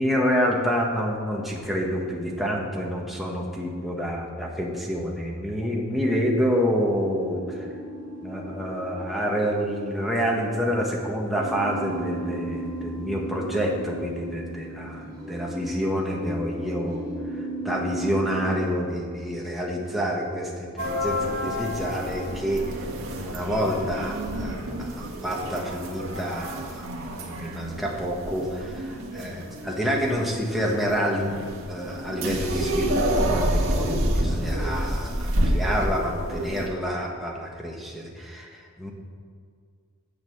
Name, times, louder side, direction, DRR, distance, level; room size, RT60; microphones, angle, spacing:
voice 1, 0.0-7.7 8.2-17.0 17.3-22.8 23.2-38.9, equal, ahead, -2 dB, 1.4 m, -28 dB
sound 1, 6.8-18.6, right 1 dB, 20° right, 2.6 m, -36 dB
sound 2, 20.8-36.7, equal, 70° right, 1.6 m, -29 dB
9.6 x 6.6 x 8.0 m, 2.1 s
head